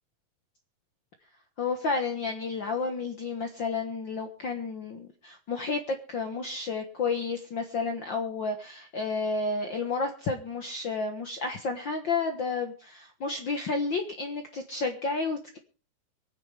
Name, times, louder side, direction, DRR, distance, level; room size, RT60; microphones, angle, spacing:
voice 1, 1.6-15.6, left 4 dB, 90° left, 6 dB, 1.0 m, -31 dB
24.5 x 9.7 x 3.4 m, 0.38 s
omnidirectional pair, 4.2 m